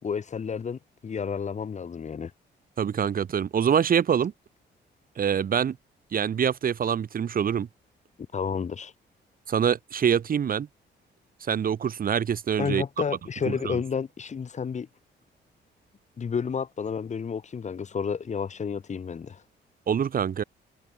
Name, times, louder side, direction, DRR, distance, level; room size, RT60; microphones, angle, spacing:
voice 1, 0.0-2.3 8.3-8.9 12.6-14.9 16.2-19.4, left 6 dB, 40° left, 2.9 m, -31 dB
voice 2, 2.8-4.3 5.2-5.8 6.1-7.7 9.5-10.7 11.4-12.8 13.5-13.8 19.9-20.4, right 8 dB, 50° right, 2.4 m, -25 dB
cardioid pair, 140°, 19 cm